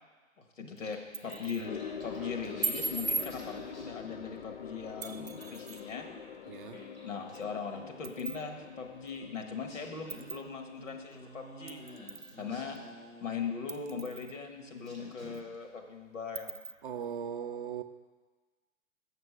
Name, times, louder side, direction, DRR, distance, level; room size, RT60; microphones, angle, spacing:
voice 1, 0.4-6.1 7.0-11.8 12.4-12.8 13.2-16.6, left 5 dB, 65° left, 3 dB, 1.4 m, -40 dB
Singing, 0.6-4.5 4.8-8.1 9.1-9.2 9.6-13.8 14.4-14.6 14.8-15.6, left 1 dB, 90° left, 3.3 m, -52 dB
sound 1, 0.9-1.7 2.6-3.3 5.0-5.8 7.3-7.4 8.0-8.4 9.1-9.2 10.1-10.4 11.7-12.4 12.8-12.9 13.7-14.4 14.9-15.0 15.3-15.4 16.4-16.7, right 4 dB, 80° right, 0.7 m, -37 dB
sound 2, 1.6-14.2 14.5-14.6 15.1-15.2, left 7 dB, 45° left, 0.5 m, -47 dB
voice 2, 6.5-6.9 16.8-17.8, right 8 dB, 40° right, 9 dB, 0.5 m, -38 dB
6.7 x 6.1 x 7.1 m, 1.3 s
figure-of-eight pair, 120°, 40 cm